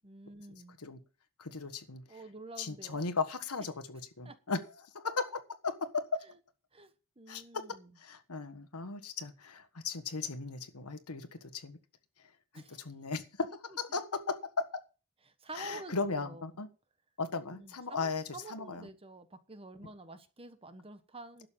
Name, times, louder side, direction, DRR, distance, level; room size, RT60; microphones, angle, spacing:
voice 1, 0.0-0.8 2.1-3.0 4.2-4.4 6.2-6.4 6.7-7.9 12.5-12.8 13.9-14.0 15.3-16.4 17.5-21.5, right 2 dB, 25° right, 1.2 m, -49 dB
voice 2, 1.4-2.0 2.6-4.6 4.9-6.2 7.3-7.6 8.0-11.8 12.5-14.8 15.5-16.7 17.2-18.2 18.5-18.9, left 4 dB, 85° left, 1.4 m, -36 dB
11.5 x 6.8 x 7.3 m
head